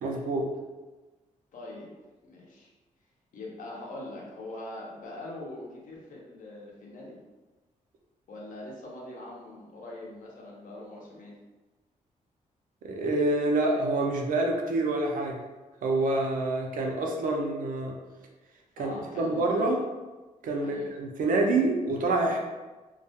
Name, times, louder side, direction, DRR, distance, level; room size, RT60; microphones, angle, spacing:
voice 1, 0.0-0.5 12.8-15.4 15.8-18.0 18.8-19.8 20.4-22.4, right 2 dB, 80° right, 1 dB, 0.5 m, -27 dB
voice 2, 1.5-1.9 2.2-2.7 3.3-7.2 8.3-11.3 18.8-19.6 20.6-20.9, left 1 dB, 70° left, -3 dB, 0.7 m, -42 dB
2.2 x 2.2 x 2.7 m, 1.2 s
cardioid pair, 110°, 14 cm